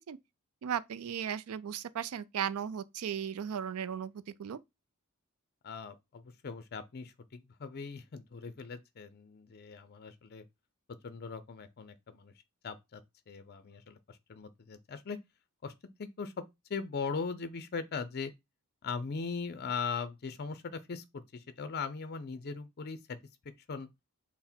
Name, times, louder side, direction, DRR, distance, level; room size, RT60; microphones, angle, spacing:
voice 1, 0.6-4.6, right 8 dB, 80° right, 0.4 m, -36 dB
voice 2, 5.6-10.4 11.0-12.3 12.6-13.0 13.3-15.2 15.6-15.7 16.0-16.3 16.7-18.3 18.8-23.2 23.7-23.9, left 5 dB, 45° left, 0.5 m, -39 dB
5.8 x 2.1 x 4.3 m
head